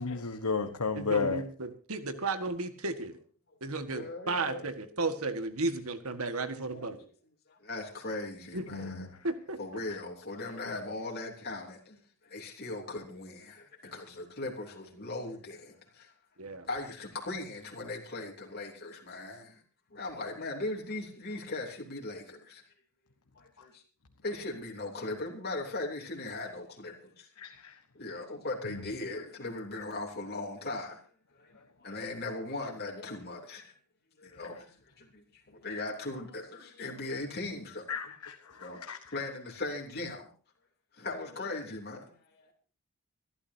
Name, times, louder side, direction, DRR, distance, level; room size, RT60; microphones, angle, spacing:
voice 1, 0.0-1.4 8.7-9.1 27.4-27.7 28.7-28.8 37.9-39.0, left 5 dB, 85° left, 1.3 m, -33 dB
voice 2, 0.9-3.2 3.6-7.0 8.5-8.9 9.2-9.8 16.4-16.7, right 3 dB, 70° right, 1.7 m, -34 dB
voice 3, 3.9-4.7 6.7-7.0 7.5-9.2 9.6-16.1 16.7-19.6 19.9-22.6 23.3-23.8 24.2-27.3 27.9-31.0 31.3-33.7 34.2-38.0 38.4-38.8 39.1-40.3 40.9-42.2, left 2 dB, 45° left, 3.1 m, -39 dB
25.5 x 12.5 x 2.8 m
head